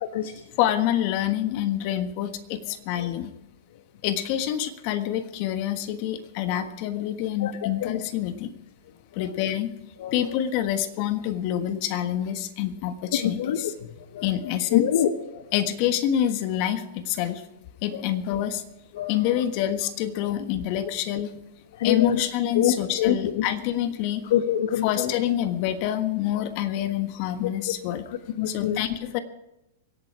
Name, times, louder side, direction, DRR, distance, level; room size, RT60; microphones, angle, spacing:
voice 1, 0.6-3.3 4.0-8.5 9.1-9.7 10.1-13.7 14.2-14.9 15.5-17.4 17.8-18.6 19.1-21.4 21.8-24.3 24.8-28.1 28.5-29.2, left 11 dB, 50° left, 9 dB, 1.4 m, -27 dB
voice 2, 13.2-13.6 14.1-14.2 14.7-15.4 17.9-18.0 19.0-19.1 21.8-22.2 22.6-23.4 24.3-25.1 28.4-28.8, left 10 dB, 70° left, 9 dB, 1.1 m, -24 dB
24.0 x 8.7 x 4.8 m, 0.91 s
hypercardioid pair, 125°, 0 cm